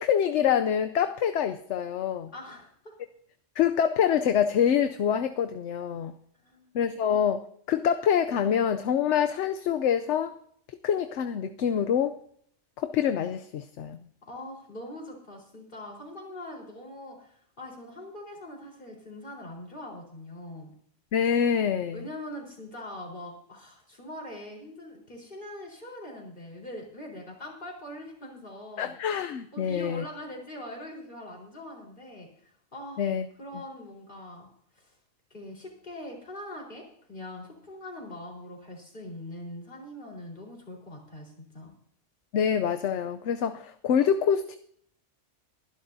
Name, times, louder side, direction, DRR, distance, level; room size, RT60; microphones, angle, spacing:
voice 1, 0.0-2.3 3.6-6.1 6.7-10.4 10.8-12.2 12.8-14.0 21.1-22.1 28.8-30.0 33.0-33.2 42.3-44.6, left 8 dB, 75° left, 8 dB, 0.9 m, -26 dB
voice 2, 2.3-3.0 6.4-6.7 14.3-20.7 21.9-28.9 29.5-34.5 34.7-34.9 35.3-41.7, left 1 dB, 45° left, -1 dB, 4.3 m, -42 dB
22.5 x 11.5 x 2.7 m, 0.65 s
omnidirectional pair, 1.2 m